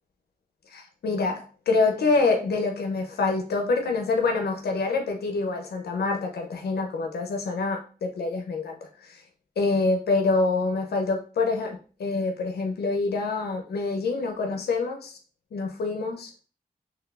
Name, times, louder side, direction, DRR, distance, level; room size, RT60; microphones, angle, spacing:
voice 1, 0.7-9.2 9.6-15.2 15.5-16.3, left 3 dB, 80° left, 3 dB, 0.5 m, -26 dB
3.7 x 3.0 x 2.3 m, 0.38 s
cardioid pair, 55°, 16 cm